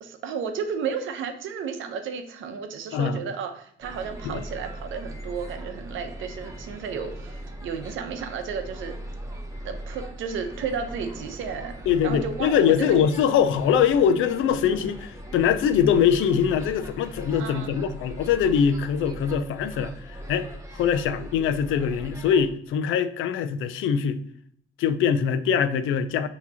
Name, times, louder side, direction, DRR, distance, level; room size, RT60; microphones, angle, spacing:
voice 1, 0.0-9.0 9.6-11.7 12.0-13.0 17.4-17.8, right 6 dB, 80° right, 0.7 m, -33 dB
sound 1, 3.8-22.5, right 1 dB, 15° right, 0.8 m, -40 dB
voice 2, 11.9-20.5 20.7-24.2 24.8-26.3, left 8 dB, 80° left, 0.4 m, -23 dB
5.9 x 2.9 x 2.8 m
cardioid pair, 90°, 20 cm